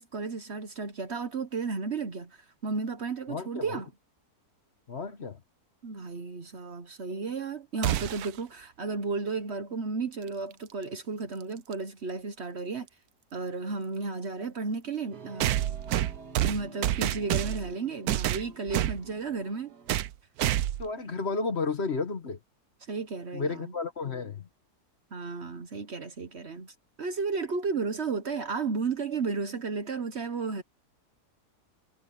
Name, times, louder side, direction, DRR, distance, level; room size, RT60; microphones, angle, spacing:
voice 1, 0.0-2.4 2.6-3.9 5.8-12.9 13.3-15.6 16.4-19.7 22.9-23.7 25.1-30.6, right 4 dB, 45° right, 1.2 m, -33 dB
voice 2, 3.3-3.8 4.9-5.4 20.8-22.4 23.3-24.5, left 4 dB, 45° left, 1.4 m, -32 dB
sound 1, 7.8-8.4 10.5-10.6 11.7-11.8 15.4-17.7 18.1-19.0 19.9-20.1 20.4-20.9, right 13 dB, 70° right, 1.1 m, -28 dB
sound 2, 15.1-20.1, right 4 dB, 90° right, 2.4 m, -49 dB
omnidirectional pair, 1.7 m